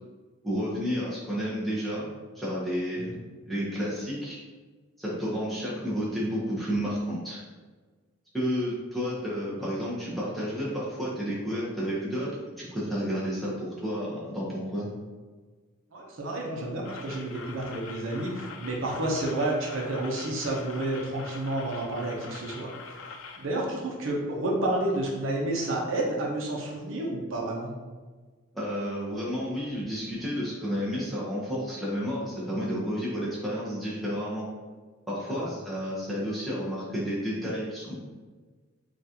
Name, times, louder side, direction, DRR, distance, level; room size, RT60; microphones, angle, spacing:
voice 1, 0.4-2.1 2.4-3.1 3.4-4.4 5.0-7.4 8.3-12.3 12.6-14.9 28.5-34.5 35.1-38.0, equal, ahead, -8 dB, 0.8 m, -31 dB
voice 2, 15.9-23.1 23.4-27.7 35.3-35.5, right 1 dB, 80° right, -2 dB, 0.7 m, -30 dB
sound 1, 16.8-23.5, left 4 dB, 70° left, 0.3 m, -44 dB
3.8 x 2.4 x 2.8 m, 1.4 s
head